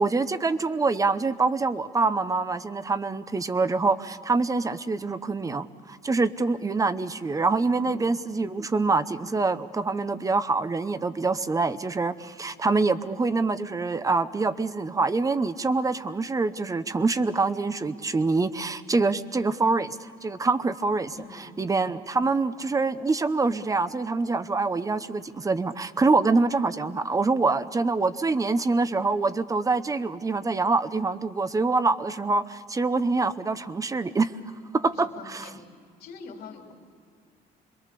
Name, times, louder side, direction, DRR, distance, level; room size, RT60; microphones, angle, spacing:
voice 1, 0.0-34.3 34.7-35.5, right 3 dB, 20° right, 14 dB, 0.8 m, -25 dB
voice 2, 21.1-21.5 34.9-35.6 36.0-36.7, left 5 dB, 65° left, 2 dB, 3.3 m, -43 dB
26.5 x 22.0 x 6.9 m, 2.2 s
cardioid pair, 110°, 17 cm